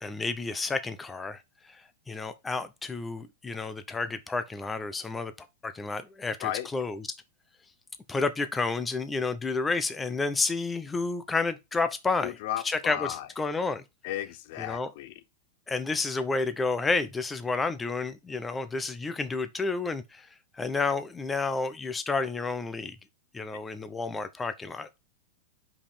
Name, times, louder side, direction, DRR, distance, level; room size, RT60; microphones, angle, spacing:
voice 1, 0.0-5.3 5.6-7.1 8.1-12.4 12.6-13.8 14.6-14.9 15.7-20.3 20.5-23.0 23.3-24.9, left 3 dB, 10° left, 0.8 m, -30 dB
voice 2, 12.2-13.3 14.0-15.2, left 13 dB, 55° left, 0.6 m, -34 dB
5.5 x 5.1 x 4.4 m
hypercardioid pair, 135°, 0 cm